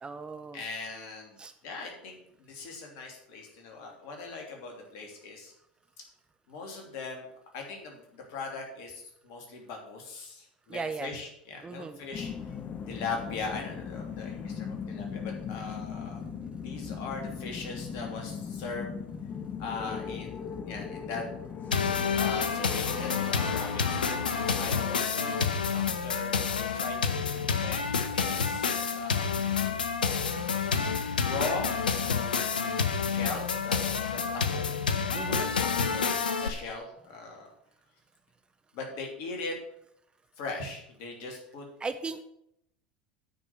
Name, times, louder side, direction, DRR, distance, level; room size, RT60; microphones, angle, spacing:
voice 1, 0.0-0.6 1.4-1.5 10.7-11.1 11.6-12.0 24.3-24.6 35.1-35.5 41.8-42.2, right 4 dB, 20° right, 9 dB, 0.8 m, -37 dB
voice 2, 0.5-1.4 1.6-5.5 6.5-7.3 7.5-12.3 12.9-16.2 16.5-18.9 19.6-21.2 22.2-24.0 24.5-27.8 28.1-29.3 31.2-31.8 33.1-33.8 34.1-34.8 35.0-37.5 38.7-39.6 40.4-41.7, left 4 dB, 60° left, 1 dB, 2.9 m, -40 dB
sound 1, 12.1-24.8, left 6 dB, 30° left, 0.9 m, -39 dB
sound 2, 21.7-36.5, left 6 dB, 80° left, 0.8 m, -29 dB
9.0 x 5.4 x 7.5 m, 0.74 s
figure-of-eight pair, 75°, 5 cm